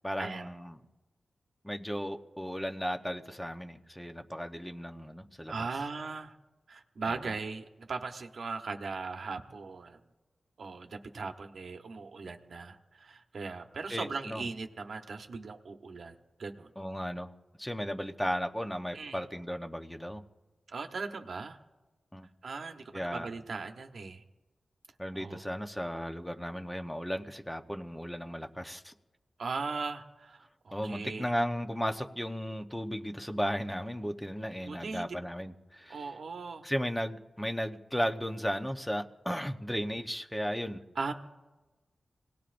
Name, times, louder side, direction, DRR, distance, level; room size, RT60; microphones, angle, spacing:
voice 1, 0.0-0.8 1.6-5.6 7.1-7.2 13.9-14.4 16.8-17.3 17.6-20.2 22.1-22.3 22.9-23.3 25.0-28.9 30.7-36.0 36.6-40.8, equal, 5° left, 5 dB, 0.9 m, -35 dB
voice 2, 5.5-6.4 6.7-10.0 10.6-16.7 18.9-19.2 20.7-21.6 22.4-24.2 25.1-25.5 29.4-31.3 34.6-35.2 35.9-36.7 40.9-41.1, right 4 dB, 75° right, 5 dB, 1.0 m, -39 dB
26.5 x 18.5 x 2.6 m, 1.1 s
wide cardioid pair, 90°, 0 cm